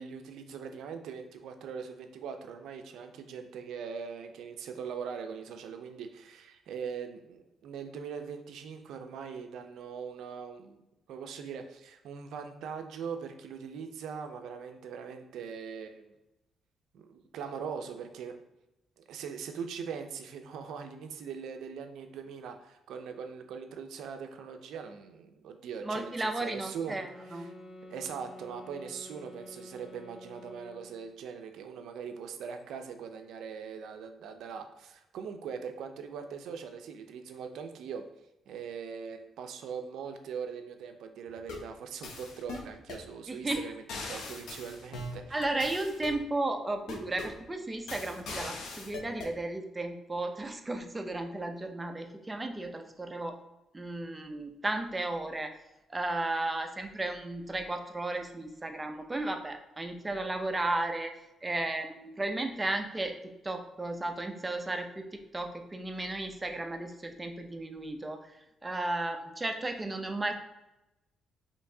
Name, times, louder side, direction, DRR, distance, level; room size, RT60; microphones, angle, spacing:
voice 1, 0.0-10.8 11.1-16.1 16.9-18.3 19.0-27.0 27.2-27.5 27.9-38.1 38.5-43.8 44.1-45.4, right 6 dB, 80° right, 6 dB, 0.4 m, -41 dB
voice 2, 25.8-27.5 43.3-43.6 45.3-53.4 53.7-55.5 55.9-61.1 61.4-63.2 63.4-70.3, right 2 dB, 15° right, 5 dB, 0.5 m, -34 dB
sound 1, 26.9-31.1, left 1 dB, 50° left, 1.2 m, -49 dB
sound 2, 41.3-41.7 42.0-43.1 43.5-43.6 43.9-46.2 46.9-47.4 47.9-49.4, left 2 dB, 75° left, 0.7 m, -41 dB
4.4 x 2.9 x 2.7 m, 0.95 s
cardioid pair, 90°, 0 cm